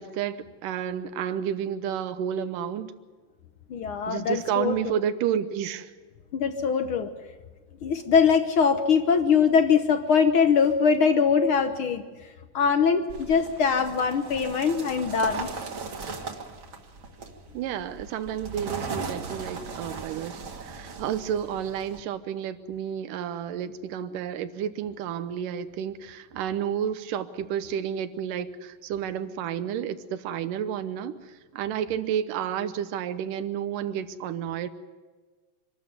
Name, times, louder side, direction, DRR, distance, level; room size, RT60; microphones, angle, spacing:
voice 1, 0.0-2.9 4.1-5.9 17.5-31.1 31.5-34.7, right 9 dB, 85° right, 12 dB, 2.5 m, -31 dB
voice 2, 3.7-4.8 6.3-7.1 7.8-12.0 12.5-15.5, left 6 dB, 65° left, 8 dB, 1.3 m, -22 dB
sound 1, 13.1-22.0, right 4 dB, 45° right, 2.1 m, -38 dB
25.5 x 13.5 x 9.4 m, 1.4 s
omnidirectional pair, 3.7 m